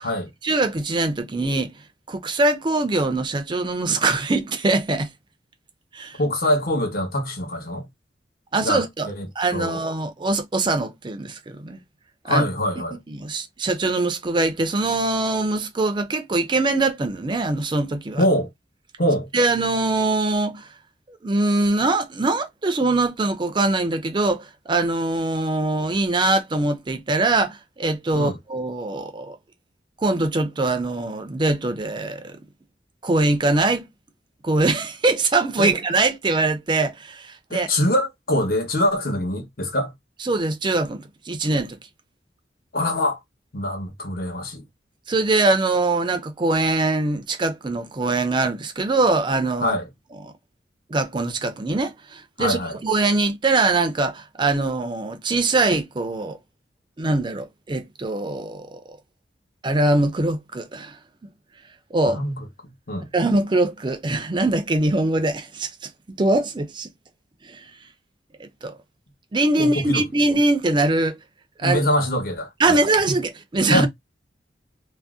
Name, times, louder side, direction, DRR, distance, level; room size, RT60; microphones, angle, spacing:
voice 1, 0.4-1.7 2.1-5.1 5.9-6.2 8.5-9.1 9.4-11.8 12.2-12.4 13.1-18.2 19.3-20.7 21.1-29.4 30.0-32.4 33.0-33.9 34.4-37.7 40.2-41.8 45.1-49.8 50.2-50.3 50.9-56.4 57.0-59.0 59.6-61.0 61.9-62.2 63.1-65.7 66.1-66.9 67.4-67.6 68.4-68.8 69.3-71.2 71.6-71.8 72.6-73.9, right 2 dB, 25° right, 0.4 m, -22 dB
voice 2, 6.2-7.9 8.6-9.8 12.3-13.0 18.2-18.5 19.0-19.3 28.1-28.4 35.6-35.7 37.5-39.9 42.7-43.2 43.5-44.6 49.6-49.8 52.4-52.8 62.0-62.4 62.9-63.1 69.6-70.0 71.6-72.8 73.1-73.2 73.7-73.9, left 1 dB, 55° left, 0.9 m, -24 dB
2.6 x 2.0 x 3.5 m
head